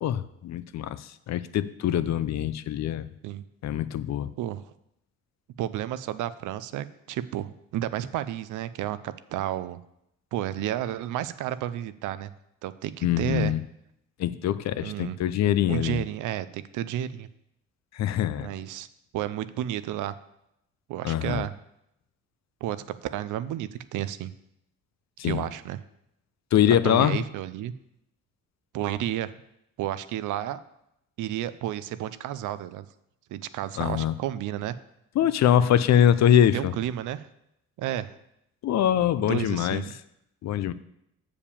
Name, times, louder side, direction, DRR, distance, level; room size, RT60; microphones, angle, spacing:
voice 1, 0.0-3.1 3.6-4.3 13.0-13.6 14.2-16.0 17.9-18.5 21.0-21.4 25.2-25.4 26.5-27.2 33.8-34.1 35.2-36.7 38.6-39.8 40.4-40.7, left 10 dB, 60° left, 14 dB, 0.6 m, -23 dB
voice 2, 5.6-9.8 10.3-12.3 12.6-13.5 14.8-15.2 15.7-17.3 18.4-18.9 19.1-20.2 20.9-21.5 22.6-24.3 25.2-25.8 26.7-27.7 28.7-29.3 29.8-30.6 31.2-32.9 33.3-34.8 36.5-37.3 37.8-38.1 39.3-39.9, right 12 dB, 85° right, 14 dB, 0.6 m, -31 dB
6.9 x 5.0 x 7.0 m, 0.80 s
cardioid pair, 90°, 30 cm